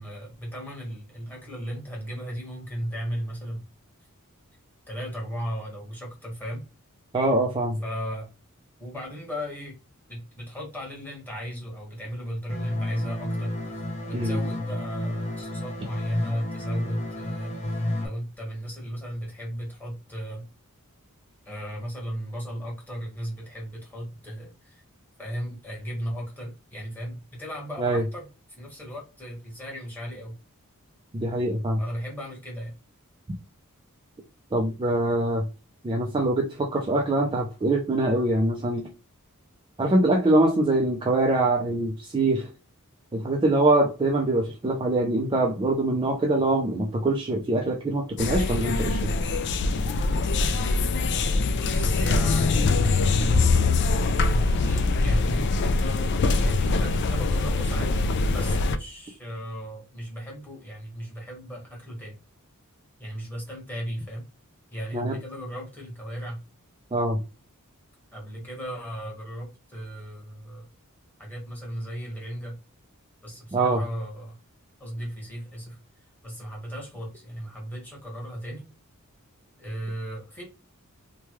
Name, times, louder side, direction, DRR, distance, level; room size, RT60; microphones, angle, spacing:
voice 1, 0.0-3.7 4.9-6.6 7.8-8.3 8.8-9.7 10.1-20.4 21.4-24.8 25.2-30.4 31.8-32.7 51.6-53.2 54.6-55.4 56.3-57.9 58.3-62.1 63.0-64.2 64.7-66.4 68.1-70.6 71.2-72.6 73.2-74.4 74.8-75.8 76.2-78.7 79.6-80.4, equal, 10° left, 1.3 m, -36 dB
voice 2, 7.1-7.8 14.1-14.4 27.8-28.0 31.1-31.8 34.5-35.4 35.8-38.9 39.8-42.5 43.1-49.1 64.9-65.2 66.9-67.2 73.5-73.8, right 2 dB, 20° right, 0.4 m, -24 dB
sound 1, 12.5-18.1, left 1 dB, 30° left, 0.8 m, -30 dB
sound 2, 48.2-58.8, left 3 dB, 50° left, 0.3 m, -23 dB
3.1 x 2.2 x 3.0 m
head